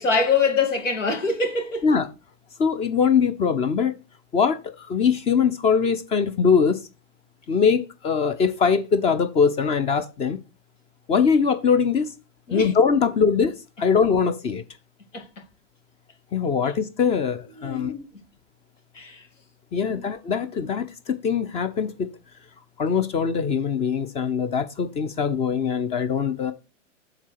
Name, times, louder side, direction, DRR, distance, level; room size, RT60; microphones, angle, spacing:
voice 1, 0.0-1.9 12.5-12.8 15.1-15.2 16.6-16.7 17.5-18.1 18.9-19.2 19.8-20.1, left 4 dB, 75° left, 2.7 m, -24 dB
voice 2, 2.6-3.9 4.3-6.8 7.5-10.4 11.1-12.1 12.5-14.6 16.3-17.9 19.7-22.1 22.8-26.5, left 6 dB, 15° left, 0.7 m, -22 dB
7.3 x 3.9 x 6.5 m
hypercardioid pair, 120°, 38 cm